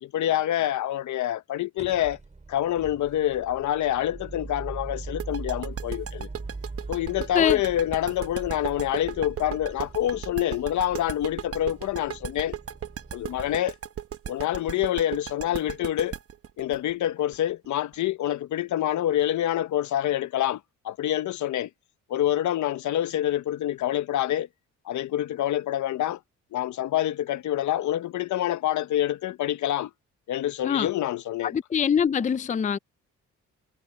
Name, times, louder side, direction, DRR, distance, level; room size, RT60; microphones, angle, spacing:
voice 1, 0.0-2.2 2.5-6.3 6.9-12.6 13.1-13.7 14.3-16.2 16.6-21.7 22.1-24.5 24.8-26.2 26.5-29.9 30.3-31.5, left 12 dB, 75° left, 1.1 m, -26 dB
sound 1, 1.8-13.5, right 3 dB, 25° right, 5.8 m, -41 dB
sound 2, 5.2-17.9, right 9 dB, 50° right, 1.1 m, -36 dB
voice 2, 31.5-32.8, left 7 dB, 25° left, 0.5 m, -23 dB
cardioid pair, 90°, 30 cm